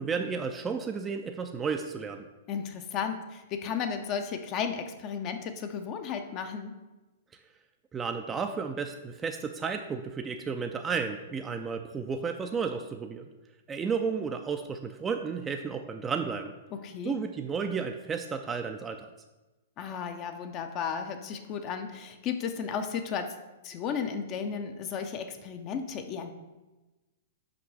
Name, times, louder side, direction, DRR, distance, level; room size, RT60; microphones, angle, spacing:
voice 1, 0.0-2.2 7.9-13.3 13.7-16.5 17.0-19.0, right 5 dB, 20° right, 5 dB, 0.3 m, -32 dB
voice 2, 2.5-6.7 16.7-17.2 19.8-23.3 23.6-26.3, left 7 dB, 35° left, 7 dB, 0.5 m, -34 dB
5.9 x 5.2 x 3.2 m, 1.1 s
hypercardioid pair, 115°, 0 cm